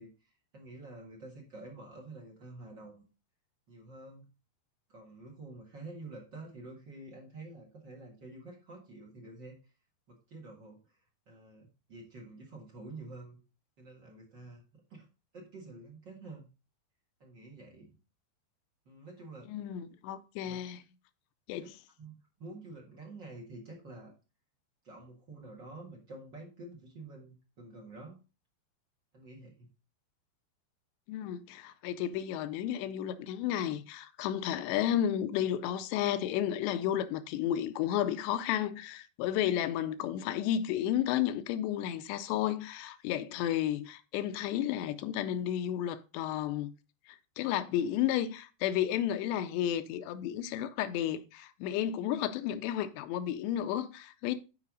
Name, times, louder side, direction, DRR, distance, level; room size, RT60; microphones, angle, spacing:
voice 1, 0.0-3.0 3.7-4.2 4.9-9.5 10.1-11.0 11.3-13.4 13.8-15.1 15.3-16.5 17.2-17.9 18.8-19.5 20.4-20.6 21.6-21.7 22.0-24.1 24.8-28.2 29.1-29.7, right 2 dB, 65° right, 1.1 m, -48 dB
voice 2, 19.5-20.8 21.5-21.7 31.1-46.7 47.4-54.4, left 11 dB, 90° left, 2.8 m, -32 dB
11.0 x 4.9 x 3.9 m
omnidirectional pair, 5.1 m